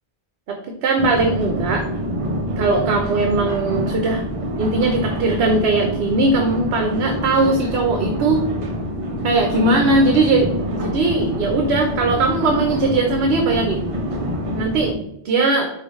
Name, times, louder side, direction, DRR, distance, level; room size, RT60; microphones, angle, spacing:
voice 1, 0.8-1.9 2.6-4.2 4.6-8.4 9.2-13.9 14.5-15.7, right 2 dB, 70° right, 2 dB, 0.8 m, -19 dB
sound 1, 1.0-14.9, equal, 45° right, 0.4 m, -26 dB
4.9 x 2.5 x 3.0 m, 0.78 s
omnidirectional pair, 1.1 m